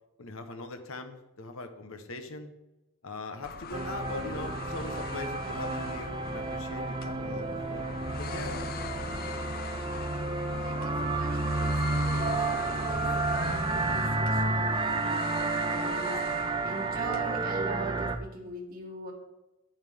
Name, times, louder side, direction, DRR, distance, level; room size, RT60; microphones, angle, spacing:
voice 1, 0.2-2.5 3.0-7.9 8.2-8.7, left 2 dB, 65° left, 7 dB, 1.0 m, -41 dB
sound 1, 3.4-17.2, left 6 dB, 40° left, 0.5 m, -42 dB
sound 2, 3.7-18.2, right 3 dB, 20° right, 0.5 m, -31 dB
voice 2, 10.2-19.1, right 2 dB, 40° right, -2 dB, 2.1 m, -41 dB
10.5 x 9.0 x 3.6 m, 0.98 s
head